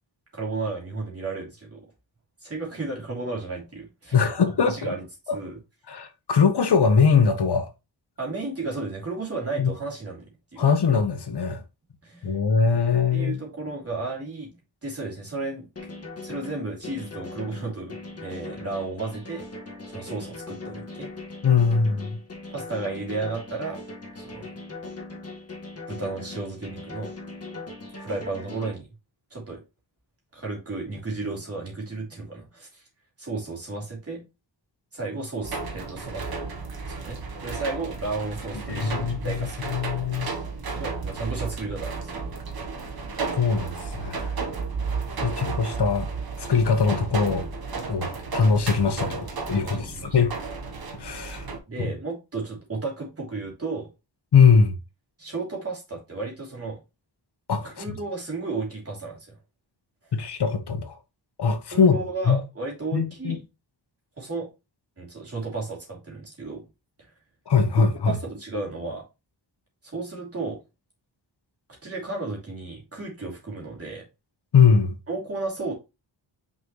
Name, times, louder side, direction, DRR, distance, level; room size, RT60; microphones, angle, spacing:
voice 1, 0.3-1.8 2.4-4.2 4.6-5.0 5.3-5.6 8.2-10.3 10.5-10.7 12.0-12.4 13.1-15.7 16.2-19.4 19.9-21.1 22.5-23.8 24.2-24.5 25.9-27.1 28.0-28.9 29.3-29.6 30.3-32.8 33.2-34.2 34.9-36.4 37.0-39.7 40.7-42.3 45.2-45.4 49.5-50.2 51.7-53.9 55.2-56.8 57.6-59.4 61.7-63.4 64.2-64.5 65.0-66.6 67.0-67.1 68.0-69.0 69.8-70.6 71.8-74.0 75.1-75.7, right 3 dB, 30° right, 3.4 m, -33 dB
voice 2, 4.1-4.8 5.9-7.7 9.6-9.7 10.6-11.6 12.2-13.4 21.4-22.2 38.7-40.3 43.4-44.3 45.2-46.1 46.4-47.5 47.9-50.3 51.0-51.5 51.8-51.9 54.3-54.7 57.5-57.8 60.1-60.9 61.4-62.0 62.3-62.4 62.9-63.4 67.5-68.2 74.5-74.9, left 5 dB, 60° left, 1.2 m, -21 dB
sound 1, 15.8-28.7, left 2 dB, 30° left, 1.8 m, -39 dB
sound 2, 35.4-51.6, right 4 dB, 50° right, 1.3 m, -33 dB
6.1 x 5.4 x 3.2 m
wide cardioid pair, 160°, 45 cm